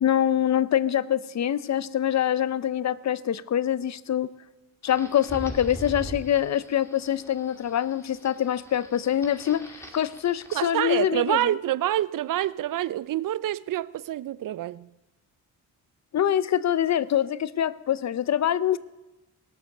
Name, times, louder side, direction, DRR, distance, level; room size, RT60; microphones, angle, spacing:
voice 1, 0.0-4.3 4.8-11.6 16.1-18.8, left 10 dB, 45° left, 0.6 m, -25 dB
sound 1, 4.8-10.6, equal, 5° left, 2.4 m, -42 dB
voice 2, 10.5-14.9, right 13 dB, 55° right, 0.5 m, -27 dB
18.5 x 7.0 x 6.6 m
cardioid pair, 70°, 38 cm